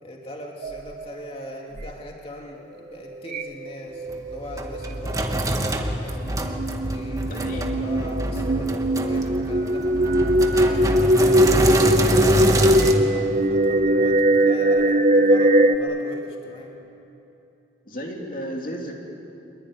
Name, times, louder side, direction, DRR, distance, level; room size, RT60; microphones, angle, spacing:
voice 1, 0.0-6.2 6.8-10.0 10.5-16.8, equal, 30° left, 0 dB, 2.8 m, -39 dB
sound 1, 0.6-1.2 1.8-1.9 3.3-3.7 4.0-4.9 6.2-15.8, right 1 dB, 40° right, 1.0 m, -20 dB
Sink (filling or washing), 4.1-12.9, right 1 dB, 20° right, 1.6 m, -25 dB
voice 2, 7.2-7.7 17.9-19.0, equal, 50° left, 1 dB, 2.8 m, -33 dB
25.0 x 22.0 x 9.9 m, 2.9 s
head